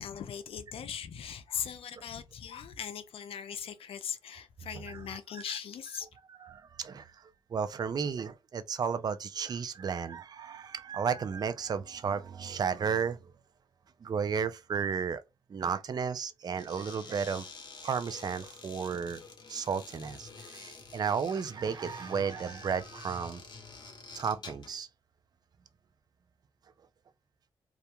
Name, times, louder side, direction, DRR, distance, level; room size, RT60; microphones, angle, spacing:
voice 1, 0.0-6.1, left 8 dB, 75° left, 0.4 m, -39 dB
voice 2, 6.4-13.3 14.0-15.2 15.5-17.5 17.8-19.2 19.5-23.4 24.1-24.9, right 6 dB, 45° right, 0.3 m, -33 dB
sound 1, 16.5-24.8, left 4 dB, 50° left, 0.7 m, -48 dB
2.3 x 2.1 x 2.8 m
cardioid pair, 85°, 10 cm